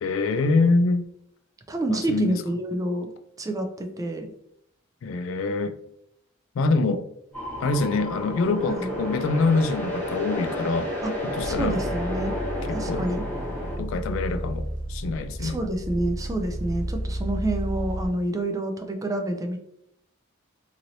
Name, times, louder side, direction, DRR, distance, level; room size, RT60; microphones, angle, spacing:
voice 1, 0.0-1.1 1.9-2.4 5.0-5.8 6.6-7.1 7.6-10.9 11.2-11.8 12.7-13.1 13.8-15.6, left 3 dB, 65° left, 9 dB, 0.3 m, -25 dB
voice 2, 1.7-3.1 3.4-3.7 4.0-4.3 8.8-8.9 11.0-11.1 11.4-12.3 12.7-13.2 15.4-19.6, right 1 dB, 15° right, 5 dB, 0.3 m, -28 dB
sound 1, 7.3-13.8, left 1 dB, 10° left, 0.9 m, -31 dB
sound 2, 7.3-18.1, equal, 60° right, 0.9 m, -33 dB
3.0 x 2.7 x 2.6 m, 0.75 s
head